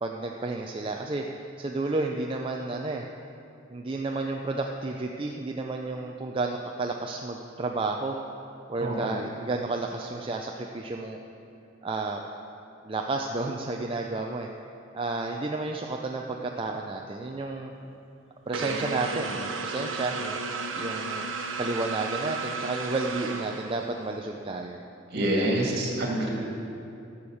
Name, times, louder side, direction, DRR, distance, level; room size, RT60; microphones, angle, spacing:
voice 1, 0.0-3.0 3.7-8.2 8.7-11.2 11.8-12.2 12.8-14.5 14.9-17.7 18.5-20.4 20.8-21.3 21.6-24.8 25.1-25.5, right 3 dB, 25° right, 1 dB, 0.5 m, -31 dB
voice 2, 8.8-9.1 25.1-26.3, right 1 dB, 55° right, -1 dB, 2.3 m, -26 dB
sound 1, 18.5-24.1, right 4 dB, 80° right, 1.0 m, -33 dB
13.0 x 7.1 x 6.4 m, 2.7 s
head